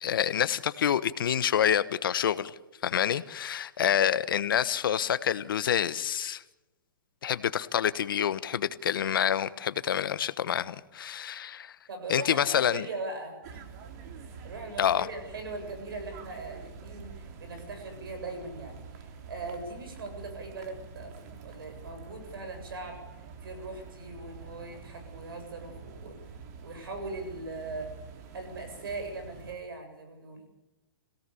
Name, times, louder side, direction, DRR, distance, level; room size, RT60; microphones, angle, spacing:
voice 1, 0.0-2.5 2.8-6.4 7.2-11.7 12.1-12.9 14.8-15.1, left 9 dB, 70° left, 15 dB, 1.1 m, -27 dB
voice 2, 11.9-13.7 14.1-18.8 19.3-26.1 26.6-27.9 28.3-30.4, right 3 dB, 80° right, 6 dB, 7.9 m, -40 dB
sound 1, 13.4-29.6, right 5 dB, 45° right, 2.8 m, -47 dB
26.0 x 17.5 x 7.1 m, 1.0 s
hypercardioid pair, 145°, 12 cm